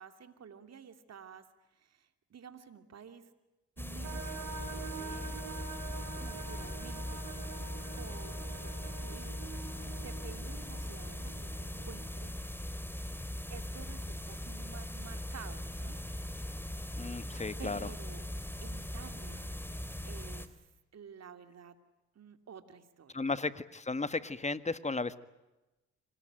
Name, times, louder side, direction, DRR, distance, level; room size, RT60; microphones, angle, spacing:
voice 1, 0.0-1.4 1.7-3.3 3.8-5.4 6.1-7.5 7.9-12.7 13.5-16.0 16.3-16.9 17.6-18.2 18.6-19.5 20.0-20.5 20.9-21.8 22.1-23.3, right 7 dB, 60° right, 9 dB, 2.8 m, -52 dB
sound 1, 3.8-20.5, left 1 dB, 5° left, 2.9 m, -40 dB
sound 2, 4.0-12.0, right 5 dB, 85° right, 5.8 m, -46 dB
voice 2, 17.0-17.9 23.1-25.2, left 3 dB, 25° left, 14 dB, 1.6 m, -34 dB
26.5 x 20.0 x 9.0 m, 1.0 s
supercardioid pair, 55°, 29 cm